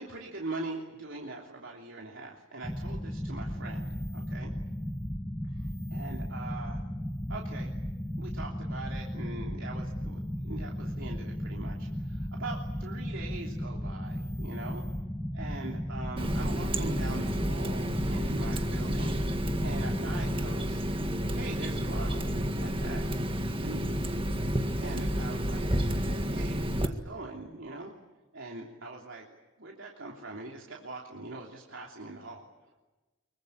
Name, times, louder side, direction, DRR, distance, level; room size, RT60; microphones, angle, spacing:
voice 1, 0.0-4.5 5.4-6.8 7.3-7.7 8.2-14.8 15.3-20.8 21.3-22.3 22.6-23.1 23.6-23.9 24.8-27.9 28.3-32.5, right 2 dB, 80° right, -1 dB, 3.3 m, -42 dB
sound 1, 2.6-20.5, equal, 10° left, 1.0 m, -35 dB
Water tap faucet, 16.2-26.9, equal, 25° right, 1.8 m, -30 dB
25.0 x 23.5 x 8.6 m, 1.1 s
head